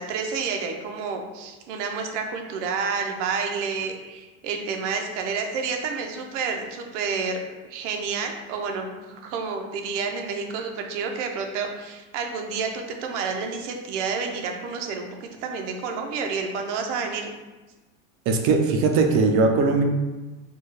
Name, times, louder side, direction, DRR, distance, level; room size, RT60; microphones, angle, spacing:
voice 1, 0.0-7.4 7.6-17.3, right 5 dB, 85° right, 3 dB, 0.8 m, -29 dB
voice 2, 18.3-19.8, right 4 dB, 40° right, 3 dB, 0.5 m, -20 dB
4.4 x 2.3 x 3.3 m, 1.2 s
cardioid pair, 165°, 35 cm